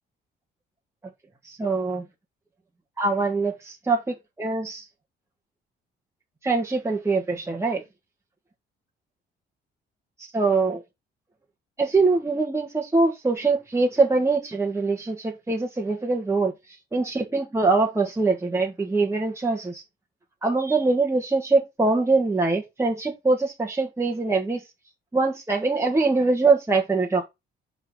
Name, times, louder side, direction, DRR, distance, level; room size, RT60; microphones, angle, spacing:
voice 1, 1.6-2.0 3.0-3.5 3.9-4.8 6.4-7.8 10.3-10.8 11.8-16.5 16.9-19.8 20.4-24.6 25.1-27.3, right 3 dB, 15° right, 1.6 m, -23 dB
11.5 x 4.0 x 3.9 m
cardioid pair, 90°, 20 cm